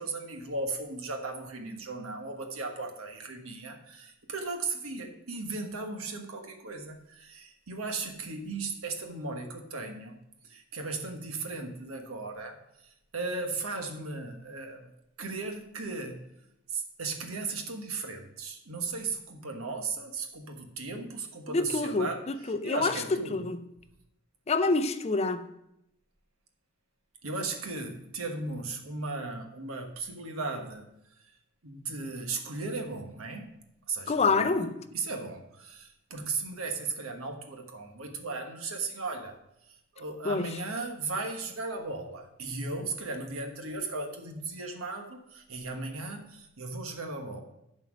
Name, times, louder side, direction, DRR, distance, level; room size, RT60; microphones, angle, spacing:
voice 1, 0.0-10.2 10.4-12.6 12.8-14.9 15.2-16.2 16.7-22.2 22.4-23.5 27.2-30.9 31.6-33.5 33.9-34.5 34.9-39.4 39.9-47.4, right 3 dB, 85° right, 1.3 m, -36 dB
voice 2, 21.5-23.0 23.3-23.6 24.5-25.5 34.1-34.8 40.2-40.6, left 3 dB, 30° left, 0.4 m, -27 dB
11.0 x 4.4 x 6.1 m
head